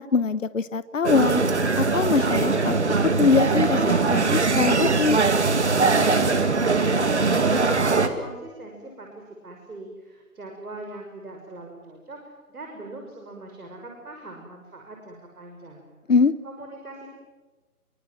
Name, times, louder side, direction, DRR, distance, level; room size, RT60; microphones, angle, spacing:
voice 1, 0.0-1.4 1.8-5.2 16.1-16.3, left 5 dB, 55° left, 15 dB, 1.0 m, -23 dB
sound 1, 1.0-8.1, right 4 dB, 45° right, 2.2 m, -21 dB
voice 2, 6.4-12.2 12.5-15.9 16.4-17.1, right 2 dB, 70° right, 2 dB, 6.2 m, -41 dB
28.5 x 24.0 x 7.7 m, 1.2 s
figure-of-eight pair, 175°, 45 cm